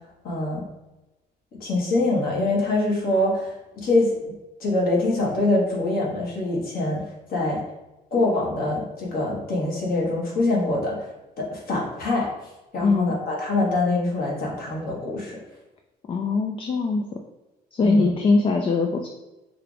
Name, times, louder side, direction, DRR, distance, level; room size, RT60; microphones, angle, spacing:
voice 1, 0.2-0.7 1.6-4.1 4.6-7.0 7.3-7.6 8.1-11.1 11.4-12.3 12.7-15.4 17.8-18.1, left 2 dB, 60° left, -3 dB, 1.4 m, -24 dB
voice 2, 12.8-13.1 16.1-17.2 17.7-19.1, left 3 dB, 30° left, 4 dB, 0.4 m, -21 dB
4.5 x 2.5 x 3.3 m, 1.0 s
cardioid pair, 110°, 17 cm